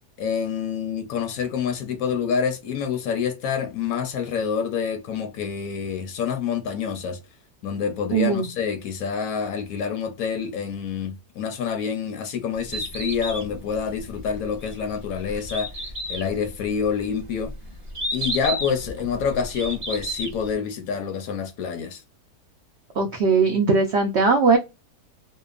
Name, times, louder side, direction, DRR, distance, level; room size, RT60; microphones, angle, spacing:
voice 1, 0.2-7.2 7.6-15.7 16.1-17.5 18.1-22.0, left 6 dB, 70° left, 0.9 m, -27 dB
voice 2, 8.1-8.5 23.0-24.6, right 4 dB, 80° right, 0.6 m, -19 dB
Bird, 12.6-20.5, equal, 25° right, 0.7 m, -33 dB
2.9 x 2.1 x 2.3 m
omnidirectional pair, 1.7 m